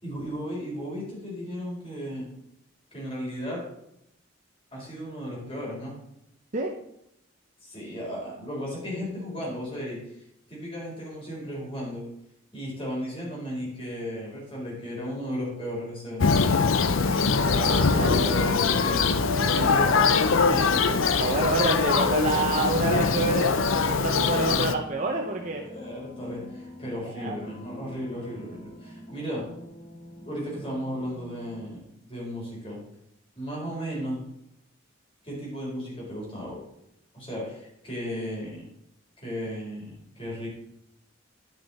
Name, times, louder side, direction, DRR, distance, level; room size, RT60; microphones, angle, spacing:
voice 1, 0.0-2.3 2.9-3.6 4.7-5.9 7.6-10.0 10.5-12.0 12.5-16.4 17.7-21.1 25.6-29.4 30.2-31.8 32.1-32.8 33.4-34.2 35.2-36.6 37.1-38.6 39.2-40.5, equal, 30° left, -4 dB, 4.3 m, -35 dB
Thunder, 16.2-24.7, left 4 dB, 80° left, 0.6 m, -22 dB
sound 1, 17.3-22.3, equal, 10° left, 1.1 m, -45 dB
voice 2, 17.4-18.5 21.1-25.6 27.0-27.4, right 2 dB, 40° right, 2 dB, 0.7 m, -28 dB
sound 2, 22.5-31.6, equal, 50° left, 2.6 m, -44 dB
11.0 x 6.3 x 4.2 m, 0.80 s
head